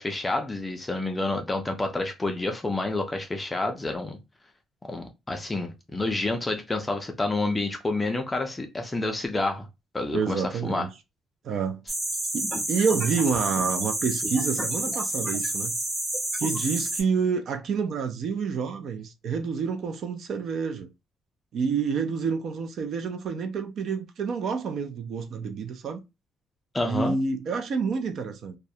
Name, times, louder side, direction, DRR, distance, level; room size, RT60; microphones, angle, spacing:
voice 1, 0.0-4.2 4.9-9.7 9.9-10.9 26.7-27.2, left 2 dB, 15° left, 0.4 m, -29 dB
voice 2, 10.1-10.9 11.4-11.8 12.3-15.7 16.4-20.9 21.5-26.0 26.8-28.6, right 5 dB, 55° right, 0.4 m, -28 dB
sound 1, 11.9-17.0, right 1 dB, 20° right, 0.9 m, -29 dB
2.3 x 2.1 x 2.6 m
cardioid pair, 160°, 0 cm